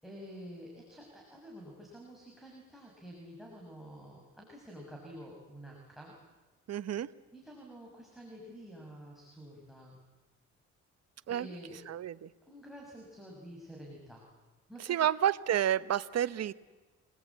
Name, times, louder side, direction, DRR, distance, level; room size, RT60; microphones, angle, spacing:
voice 1, 0.0-6.1 7.3-10.0 11.3-11.8 12.5-14.3 14.7-15.0, equal, ahead, -2 dB, 6.3 m, -49 dB
voice 2, 6.7-7.1 11.3-11.5 11.9-12.3 14.9-16.5, right 10 dB, 55° right, 16 dB, 1.0 m, -30 dB
26.5 x 21.0 x 8.5 m, 1.2 s
cardioid pair, 90°, 30 cm